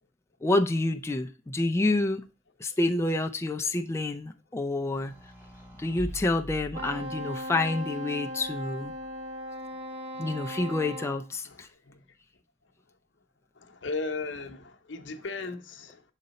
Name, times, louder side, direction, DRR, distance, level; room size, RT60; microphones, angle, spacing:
voice 1, 0.4-2.2 2.6-5.1 5.8-8.9 10.2-11.7, left 2 dB, 15° left, 0.3 m, -28 dB
sound 1, 4.8-7.5 8.4-9.4, equal, 10° right, 2.1 m, -44 dB
Wind instrument woodwind instrument, 6.7-11.2, equal, 40° right, 1.2 m, -38 dB
voice 2, 11.4-12.0 13.6-16.0, left 3 dB, 70° left, 0.8 m, -37 dB
6.6 x 3.9 x 4.0 m
head